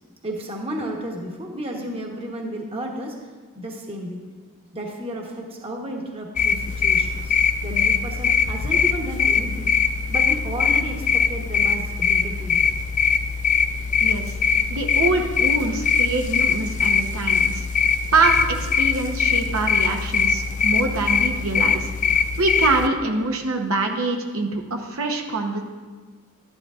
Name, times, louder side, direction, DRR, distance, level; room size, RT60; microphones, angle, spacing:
voice 1, 0.2-3.2 3.5-4.2 4.7-7.4 7.6-9.7 10.1-12.7, equal, 25° right, 0 dB, 1.1 m, -32 dB
sound 1, 6.4-22.9, left 6 dB, 35° left, 0.3 m, -22 dB
voice 2, 14.0-14.3 14.7-17.7 18.1-21.9 22.4-25.6, right 3 dB, 70° right, 2 dB, 0.9 m, -24 dB
12.0 x 10.5 x 2.4 m, 1.4 s
head